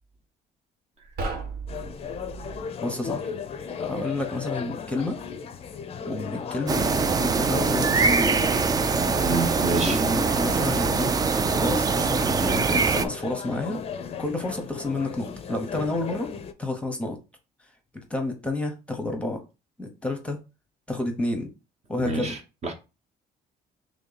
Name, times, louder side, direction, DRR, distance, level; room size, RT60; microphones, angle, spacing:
sound 1, 1.0-2.6, right 3 dB, 70° right, 1.0 m, -35 dB
sound 2, 1.7-16.5, left 6 dB, 35° left, 0.5 m, -36 dB
voice 1, 2.8-3.2 3.8-5.2 6.0-6.9 7.2-8.4 9.8-11.1 11.6-13.8 14.2-16.3 16.6-17.2 18.1-19.4 19.8-20.4 20.9-21.5 21.9-22.4, left 2 dB, 5° left, 0.8 m, -29 dB
sound 3, 6.7-13.0, right 4 dB, 25° right, 0.3 m, -23 dB
voice 2, 9.2-10.0 22.0-22.7, right 3 dB, 40° right, 0.9 m, -28 dB
3.1 x 2.8 x 4.0 m
cardioid pair, 110°, 17 cm